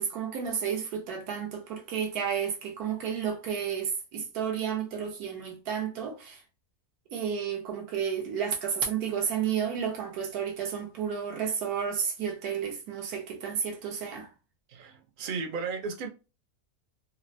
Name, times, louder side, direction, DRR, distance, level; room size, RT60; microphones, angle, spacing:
voice 1, 0.0-6.4 7.1-14.3, right 7 dB, 80° right, 1.2 m, -31 dB
voice 2, 14.7-16.1, right 5 dB, 60° right, 0.5 m, -34 dB
4.0 x 2.0 x 2.6 m
omnidirectional pair, 1.6 m